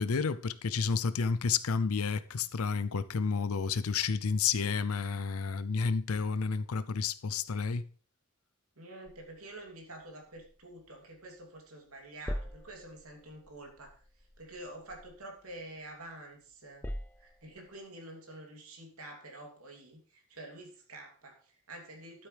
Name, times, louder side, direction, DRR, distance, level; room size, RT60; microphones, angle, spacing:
voice 1, 0.0-7.9, left 5 dB, 80° left, 0.6 m, -31 dB
voice 2, 8.8-14.0 14.4-16.9 17.2-22.3, right 1 dB, 80° right, 3.0 m, -48 dB
sound 1, 9.1-11.6 11.9-16.1 16.5-17.8, equal, 10° left, 0.5 m, -45 dB
12.5 x 8.2 x 3.4 m
head